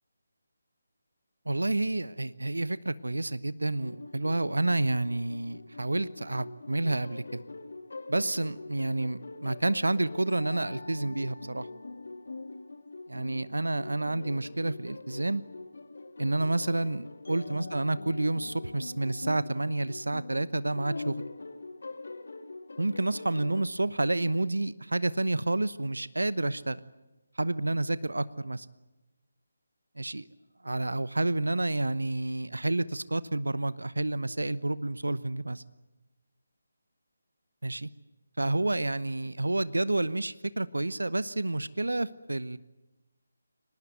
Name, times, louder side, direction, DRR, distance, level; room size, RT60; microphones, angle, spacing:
voice 1, 1.5-7.4 8.1-11.7 13.1-15.4 16.2-21.2 22.8-26.8 27.4-28.7 30.0-30.3 30.6-35.6 37.6-37.9 38.4-42.6, right 2 dB, 70° right, 18 dB, 0.9 m, -29 dB
sound 1, 3.8-23.6, left 3 dB, 55° left, 2.1 m, -43 dB
25.0 x 19.5 x 9.4 m, 1.1 s
figure-of-eight pair, 150°, 0 cm